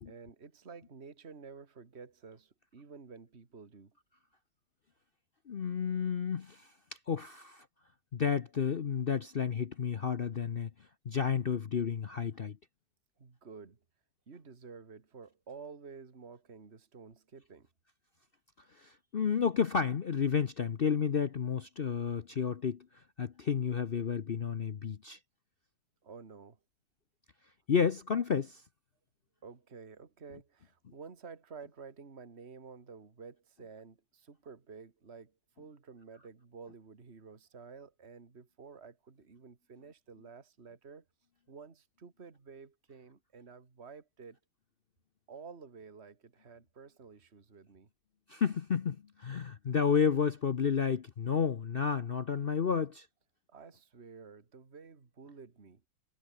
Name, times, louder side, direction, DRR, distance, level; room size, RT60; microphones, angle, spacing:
voice 1, 0.1-4.0 13.2-13.8 14.3-17.7 26.0-26.6 29.4-41.0 41.5-44.4 45.3-47.9 53.5-55.8, right 5 dB, 35° right, 2.4 m, -51 dB
voice 2, 5.5-6.7 7.1-7.6 8.1-10.7 11.1-12.6 18.8-22.9 23.2-25.2 27.7-28.6 48.3-53.1, left 6 dB, 55° left, 0.6 m, -31 dB
omnidirectional pair, 2.0 m